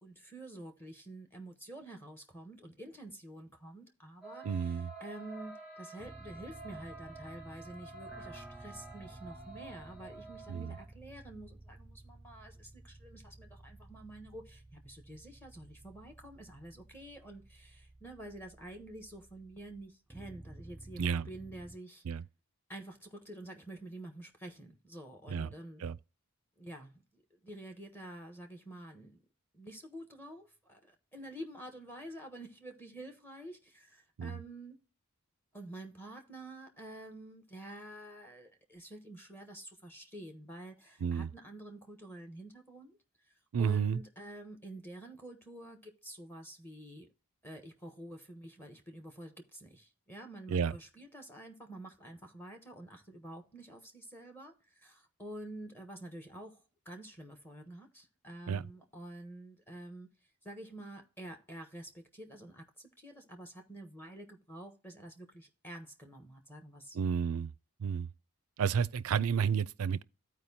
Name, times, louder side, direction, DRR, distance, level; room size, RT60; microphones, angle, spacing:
voice 1, 0.0-22.0 22.7-25.9 26.6-29.2 29.5-34.8 35.5-43.3 43.6-47.1 47.4-67.0, right 1 dB, 10° left, 1.2 m, -49 dB
sound 1, 4.2-10.8, right 3 dB, 50° left, 2.6 m, -50 dB
voice 2, 4.4-4.9 10.5-10.7 21.0-21.3 22.1-22.2 25.3-25.5 25.8-26.0 34.2-34.4 41.0-41.3 43.5-44.0 50.5-50.7 58.5-58.6 66.9-67.5 67.8-68.1 68.6-70.0, right 7 dB, 70° right, 0.4 m, -31 dB
sound 2, 6.0-21.8, right 1 dB, 5° right, 0.4 m, -54 dB
14.0 x 4.7 x 2.8 m
head